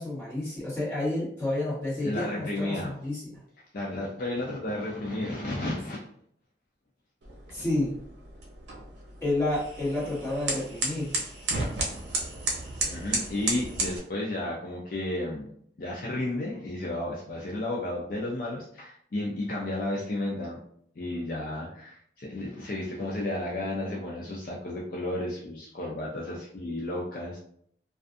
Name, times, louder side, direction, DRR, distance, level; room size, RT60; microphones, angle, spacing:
voice 1, 0.0-3.3 7.5-7.9 9.2-11.1, left 2 dB, 15° left, -10 dB, 1.3 m, -30 dB
voice 2, 2.0-2.9 3.7-6.1 12.9-15.4 15.8-20.6 21.0-27.4, left 1 dB, 50° left, -4 dB, 0.4 m, -32 dB
sound 1, 7.2-14.0, right 2 dB, 75° right, 0.6 m, -33 dB
2.5 x 2.3 x 2.5 m, 0.65 s
head